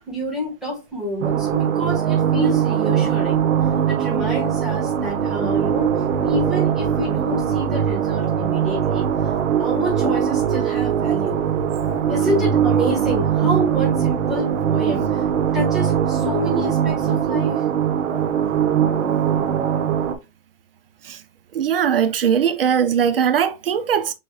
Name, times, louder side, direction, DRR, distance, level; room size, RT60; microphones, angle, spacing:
voice 1, 0.0-3.4 3.9-5.9 6.2-9.1 9.6-11.4 12.1-15.2 15.5-17.6, equal, ahead, 1.3 m, -28 dB
sound 1, 1.2-20.2, right 8 dB, 65° right, 0.9 m, -21 dB
voice 2, 21.5-24.1, right 8 dB, 45° right, 0.4 m, -20 dB
6.2 x 3.0 x 2.2 m
hypercardioid pair, 170°, 42 cm